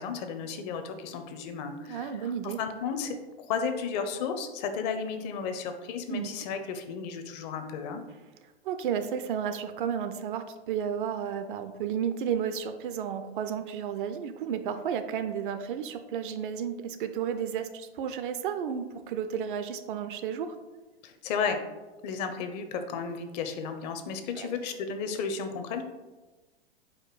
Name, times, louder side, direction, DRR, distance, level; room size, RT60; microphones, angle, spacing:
voice 1, 0.0-2.3 2.6-8.0 21.0-21.6 22.0-25.8, left 6 dB, 40° left, 7 dB, 0.6 m, -33 dB
voice 2, 1.9-2.6 6.1-6.3 8.6-20.6 24.4-24.6, right 8 dB, 55° right, 9 dB, 0.5 m, -32 dB
4.9 x 2.2 x 4.6 m, 1.2 s
figure-of-eight pair, 100°, 32 cm